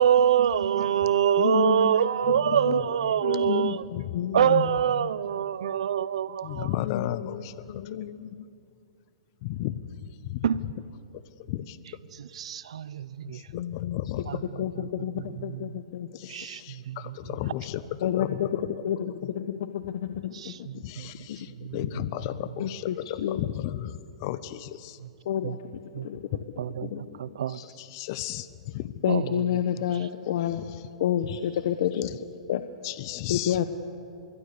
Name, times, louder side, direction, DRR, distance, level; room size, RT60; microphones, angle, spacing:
voice 1, 0.0-3.8 4.3-6.7 10.4-10.6 12.4-13.4 14.3-14.4 14.8-15.8 16.3-17.0 20.3-21.8 25.4-25.6 25.9-26.1 26.6-26.9 27.2-27.6 29.1-29.3, right 9 dB, 75° right, 0.8 m, -25 dB
voice 2, 1.4-1.9 2.3-2.8 3.2-4.8 6.7-7.4 7.7-8.4 13.5-14.0 14.6-16.1 18.0-18.5 18.8-20.8 21.3-21.4 22.6-23.4 25.2-25.6 26.0-26.2 26.8-27.2 27.5-27.7 29.0-30.6 31.0-32.1 32.5-32.6 33.3-33.7, left 10 dB, 60° left, 1.0 m, -29 dB
voice 3, 2.2-3.2 4.0-4.1 6.4-8.0 9.4-10.7 11.1-11.2 11.5-11.8 13.2-14.4 16.1-18.8 20.8-25.0 26.3-26.4 27.6-28.9 30.6-30.9 31.2-31.4 31.9-32.2 32.8-33.6, left 14 dB, 40° left, 0.8 m, -35 dB
26.0 x 22.0 x 6.9 m
hypercardioid pair, 155°, 3 cm